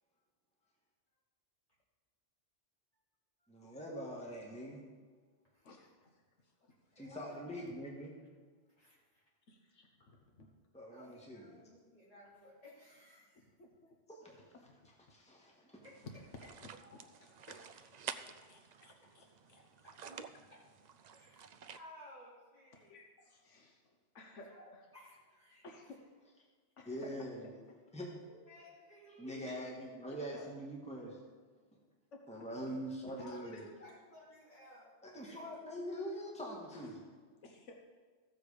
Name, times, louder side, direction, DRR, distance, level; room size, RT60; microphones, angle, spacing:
voice 1, 3.5-4.8 6.9-8.1 10.7-11.4 14.1-14.5 15.1-15.8 26.8-27.5 27.9-28.1 29.2-31.2 32.3-33.6 35.0-37.0, equal, 5° left, -2 dB, 1.6 m, -43 dB
voice 2, 5.6-6.7 7.0-7.1 9.5-10.5 13.3-14.0 14.4-14.9 16.0-17.9 18.1-19.6 22.7-24.8 25.6-26.0 26.8-27.3 27.7-27.8 30.1-30.5 32.1-32.7 33.0-33.6 35.3-35.5 36.7-37.0 37.4-37.8, left 2 dB, 75° left, 2 dB, 1.3 m, -56 dB
voice 3, 6.8-7.8 8.8-9.2 10.0-10.1 10.9-13.5 15.8-16.2 16.8-17.2 18.2-18.5 19.0-19.1 19.8-19.9 20.5-20.6 21.1-22.9 24.5-25.8 28.3-29.7 33.2-35.6, left 1 dB, 30° left, -7 dB, 3.3 m, -58 dB
sound 1, 15.8-21.8, right 7 dB, 60° right, 0.4 m, -50 dB
14.5 x 6.9 x 5.0 m, 1.5 s
omnidirectional pair, 1.3 m